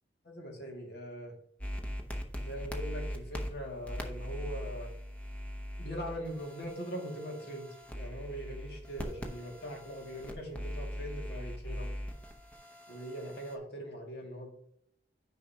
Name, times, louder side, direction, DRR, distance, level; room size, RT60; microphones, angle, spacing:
voice 1, 0.2-1.3 2.4-4.9 5.8-7.7 7.9-11.9 12.9-14.5, equal, 65° left, 0 dB, 2.1 m, -41 dB
sound 1, 1.6-13.5, equal, 10° left, 0.7 m, -41 dB
9.3 x 5.4 x 2.8 m, 0.70 s
head